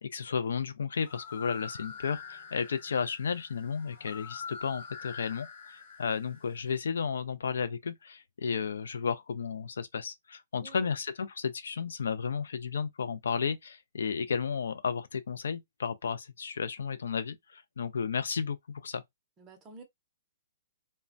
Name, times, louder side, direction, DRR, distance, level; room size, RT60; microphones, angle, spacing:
voice 1, 0.0-19.0, left 6 dB, 85° left, 0.4 m, -33 dB
sound 1, 0.9-6.7, left 6 dB, 40° left, 0.9 m, -45 dB
voice 2, 10.6-10.9 19.4-19.8, right 4 dB, 15° right, 0.6 m, -50 dB
3.2 x 2.1 x 2.5 m
hypercardioid pair, 175°, 0 cm